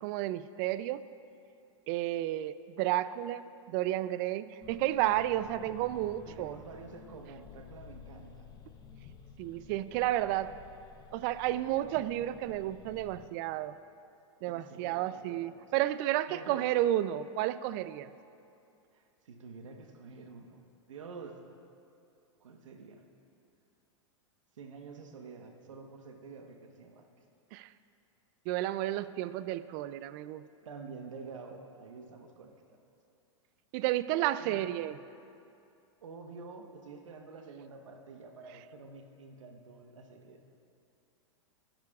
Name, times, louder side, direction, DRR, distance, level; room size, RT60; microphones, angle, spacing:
voice 1, 0.0-1.1 1.9-3.4 3.7-6.5 9.4-10.5 11.1-13.8 14.4-18.1 27.5-27.7 28.5-30.4 33.7-35.0, right 14 dB, 45° right, 15 dB, 0.4 m, -32 dB
sound 1, 4.6-13.3, left 6 dB, 25° left, 0.8 m, -53 dB
voice 2, 6.2-8.5 14.5-15.7 16.3-16.7 18.9-20.6 20.9-21.4 22.4-23.0 24.6-27.1 30.6-32.5 34.4-34.7 36.0-40.4, right 4 dB, 85° right, 4 dB, 1.1 m, -48 dB
20.0 x 11.5 x 2.4 m, 2.6 s
hypercardioid pair, 125°, 16 cm